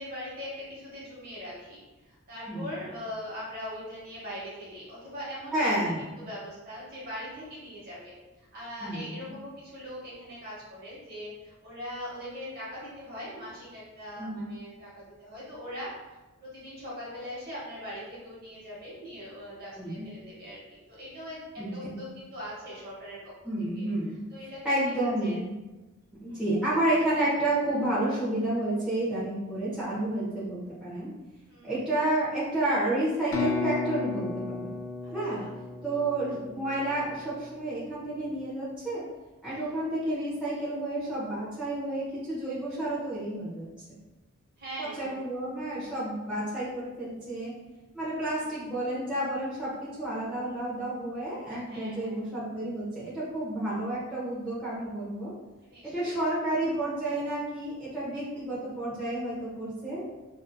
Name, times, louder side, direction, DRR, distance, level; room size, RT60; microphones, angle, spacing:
voice 1, 0.0-16.0 16.4-23.3 23.7-23.9 24.3-25.4 26.3-26.5 31.5-31.8 35.0-35.5 35.9-36.1 39.5-39.8 44.6-45.2 48.3-48.5 51.7-52.3 55.6-56.2, equal, 45° right, -6 dB, 1.0 m, -41 dB
voice 2, 5.5-6.0 8.8-9.2 14.2-14.5 19.8-20.1 21.6-21.9 23.4-24.2 24.6-25.5 26.2-31.1 31.6-34.7 35.1-35.4 35.8-39.0 39.4-43.7 44.8-47.5 47.9-49.7 50.0-55.3 55.8-60.0, right 1 dB, 5° right, -11 dB, 0.6 m, -30 dB
sound 1, 33.3-37.1, left 5 dB, 55° left, 0.4 m, -34 dB
2.4 x 2.4 x 2.5 m, 1.1 s
head